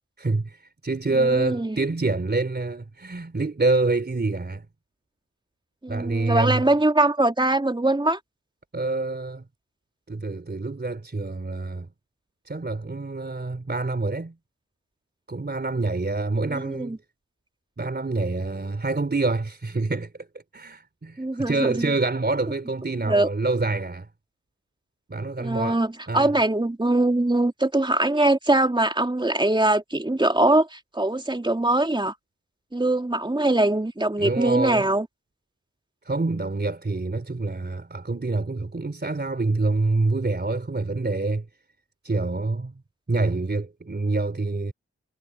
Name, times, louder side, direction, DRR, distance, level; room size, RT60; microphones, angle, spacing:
voice 1, 0.2-4.7 5.9-6.6 8.7-9.4 10.1-11.9 12.5-14.4 15.3-17.0 17.8-20.3 20.5-24.1 25.1-26.3 34.2-34.9 36.0-41.5 42.0-42.7 43.1-44.7, right 3 dB, 35° right, 3.6 m, -26 dB
voice 2, 1.1-1.8 5.8-8.2 16.5-17.0 21.2-21.9 23.0-23.3 25.4-32.1 32.7-35.1, right 2 dB, 15° right, 2.8 m, -22 dB
cardioid pair, 45°, 29 cm